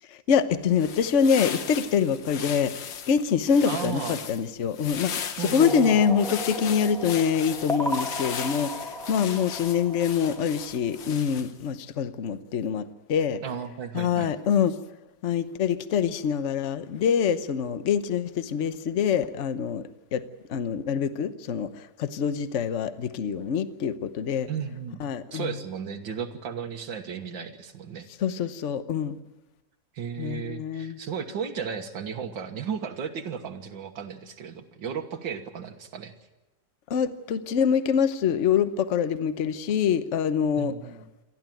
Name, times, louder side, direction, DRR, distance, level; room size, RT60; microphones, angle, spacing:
voice 1, 0.3-12.8 13.1-13.4 13.9-14.7 15.2-19.8 20.1-20.2 20.5-21.7 22.0-24.5 25.0-25.5 28.2-29.2 30.2-31.0 36.9-40.7, left 7 dB, 50° left, 12 dB, 1.0 m, -25 dB
sound 1, 0.6-11.7, left 7 dB, 85° left, 1.9 m, -37 dB
voice 2, 3.7-4.2 5.4-6.1 13.4-14.3 24.5-28.1 29.9-36.1 40.6-41.1, right 7 dB, 90° right, 5 dB, 2.2 m, -35 dB
sound 2, 5.6-11.0, left 1 dB, ahead, 1.7 m, -35 dB
28.0 x 12.0 x 9.1 m, 1.1 s
omnidirectional pair, 2.0 m